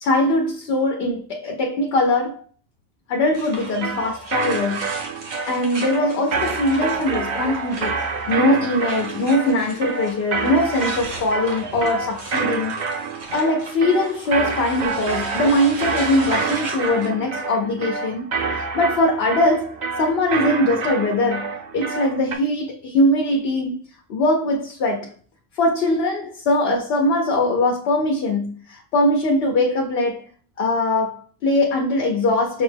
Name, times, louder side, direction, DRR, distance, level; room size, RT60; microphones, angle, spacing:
voice 1, 0.0-2.4 3.1-4.9 5.5-8.0 8.3-12.7 13.3-23.8 24.1-25.1 25.5-30.3 30.6-32.6, left 1 dB, 70° left, 0.8 m, -21 dB
sound 1, 3.3-17.1, right 2 dB, 80° right, 1.3 m, -37 dB
sound 2, 3.8-22.4, right 5 dB, 50° right, 0.6 m, -28 dB
5.8 x 2.1 x 3.2 m
omnidirectional pair, 1.1 m